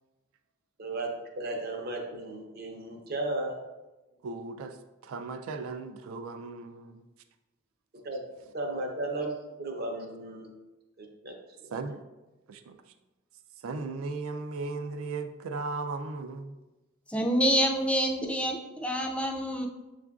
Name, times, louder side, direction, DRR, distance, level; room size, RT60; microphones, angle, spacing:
voice 1, 0.8-3.6 7.9-8.2 8.5-10.5 11.0-11.6, right 2 dB, 50° right, 2 dB, 0.7 m, -35 dB
voice 2, 4.2-4.8 5.0-7.0 11.7-12.0 12.5-12.8 13.6-16.5, right 3 dB, 75° right, 8 dB, 0.3 m, -36 dB
voice 3, 17.1-19.7, equal, 5° left, 2 dB, 0.3 m, -27 dB
7.3 x 2.4 x 2.3 m, 1.1 s
head